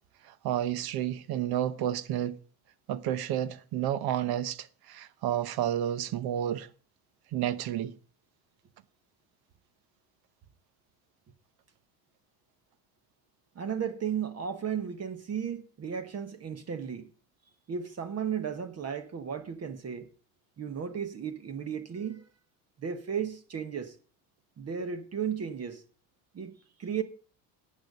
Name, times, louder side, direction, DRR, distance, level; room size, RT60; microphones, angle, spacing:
voice 1, 0.2-2.4 2.9-6.7 7.3-7.9, right 11 dB, 55° right, 1.1 m, -31 dB
voice 2, 13.5-17.1 17.7-20.1 20.6-22.3 22.8-24.0 24.6-25.8 26.3-27.0, right 7 dB, 35° right, 1.3 m, -34 dB
11.5 x 8.5 x 5.3 m
supercardioid pair, 90°, 43 cm